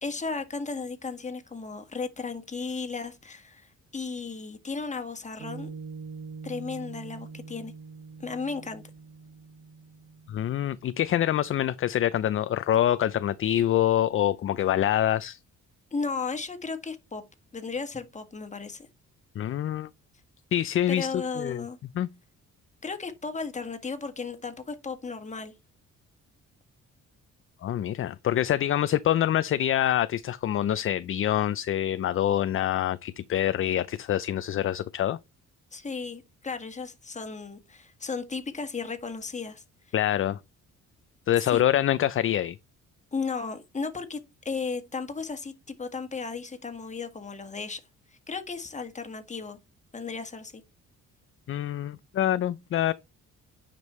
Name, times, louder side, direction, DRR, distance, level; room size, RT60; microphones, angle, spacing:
voice 1, 0.0-5.7 6.4-7.7 8.2-8.8 15.9-17.2 17.5-18.9 20.9-21.8 22.8-25.5 35.7-39.6 41.5-41.6 43.1-44.2 44.4-47.8 48.3-49.6 49.9-50.6, left 4 dB, 25° left, 1.6 m, -35 dB
Piano, 5.4-12.1, right 4 dB, 45° right, 1.1 m, -44 dB
voice 2, 10.3-15.4 19.4-19.9 20.5-21.6 22.0-22.1 27.6-35.2 39.9-40.4 41.3-42.6 51.5-52.9, left 11 dB, 45° left, 0.5 m, -25 dB
9.5 x 5.2 x 3.1 m
cardioid pair, 90°, 30 cm